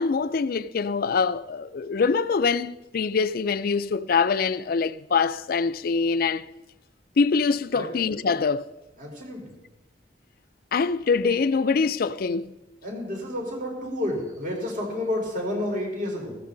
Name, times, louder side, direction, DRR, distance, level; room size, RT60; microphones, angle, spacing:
voice 1, 0.0-6.4 7.2-8.7 10.7-12.5, left 5 dB, 55° left, 0.4 m, -24 dB
voice 2, 9.0-9.5 12.8-16.4, left 1 dB, 50° right, 4.0 m, -30 dB
14.5 x 14.0 x 3.9 m
head